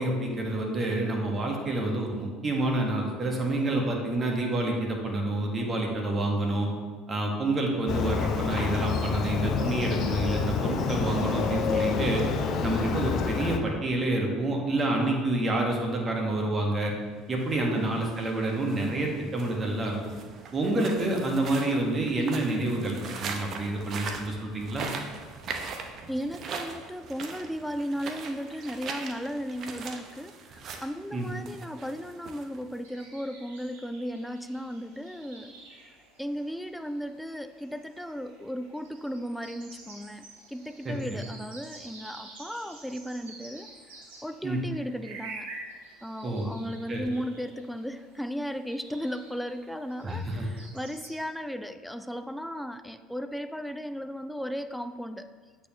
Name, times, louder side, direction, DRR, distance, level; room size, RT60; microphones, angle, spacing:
voice 1, 0.0-6.7 7.1-12.2 12.6-16.9 17.3-20.0 20.5-24.9 31.1-31.3 40.8-41.2 44.4-44.6 46.2-46.5 46.9-47.0 50.0-50.5, right 2 dB, 35° right, 0 dB, 1.4 m, -28 dB
Motorcycle, 7.9-13.6, left 6 dB, 50° left, 0.6 m, -28 dB
sound 1, 17.3-33.0, right 4 dB, 50° right, 0.7 m, -41 dB
voice 2, 26.1-35.5 35.8-35.9 36.2-44.0 44.2-45.5 46.0-55.3, equal, ahead, 9 dB, 0.3 m, -36 dB
sound 2, 32.8-51.2, right 3 dB, 85° right, 1.5 m, -49 dB
8.0 x 4.5 x 3.0 m, 1.5 s
hypercardioid pair, 75°, 0 cm